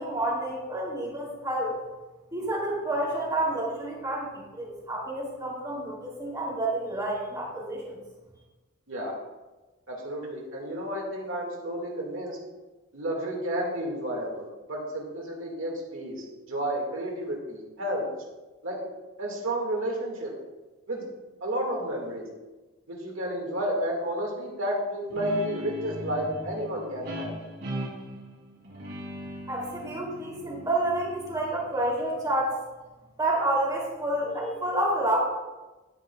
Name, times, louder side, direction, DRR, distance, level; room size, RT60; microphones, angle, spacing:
voice 1, 0.0-1.7 2.3-8.0 29.5-32.6 33.2-35.2, right 1 dB, 20° right, -4 dB, 2.6 m, -29 dB
voice 2, 9.9-12.4 12.9-18.0 18.6-18.8 19.2-20.3 20.9-21.0 21.4-22.3 22.9-27.3, right 1 dB, 70° right, -1 dB, 1.8 m, -31 dB
Guitar, 25.1-32.3, equal, 55° right, 2.4 m, -39 dB
10.5 x 9.5 x 2.3 m, 1.2 s
head